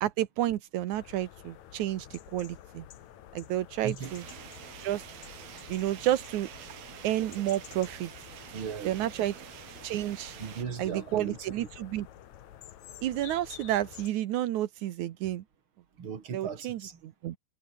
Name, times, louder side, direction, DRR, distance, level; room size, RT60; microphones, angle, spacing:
voice 1, 0.0-2.9 3.3-4.2 4.8-5.0 5.7-6.5 7.0-8.1 8.8-9.3 9.8-10.4 10.8-12.1 13.0-15.4 16.3-17.4, right 13 dB, 80° right, 1.7 m, -31 dB
sound 1, 0.9-14.1, left 12 dB, 65° left, 1.8 m, -50 dB
sound 2, 4.0-10.7, right 11 dB, 65° right, 3.7 m, -47 dB
voice 2, 8.5-9.0 10.3-11.5 16.0-17.0, right 6 dB, 35° right, 2.7 m, -37 dB
omnidirectional pair, 5.0 m